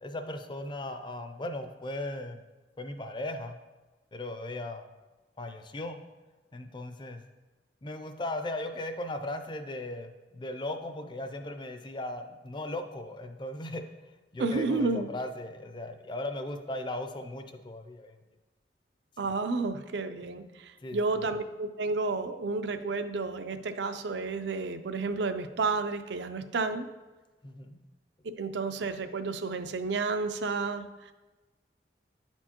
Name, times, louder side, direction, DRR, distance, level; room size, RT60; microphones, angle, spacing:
voice 1, 0.0-2.4 2.8-3.6 4.1-4.8 5.4-6.0 6.5-7.2 7.8-18.2 20.4-20.5 20.8-21.0 27.4-27.8, left 1 dB, 25° left, 7 dB, 0.4 m, -37 dB
voice 2, 14.4-15.1 19.2-26.9 28.4-31.1, right 3 dB, 75° right, 10 dB, 0.5 m, -31 dB
9.9 x 4.4 x 2.9 m, 1.2 s
head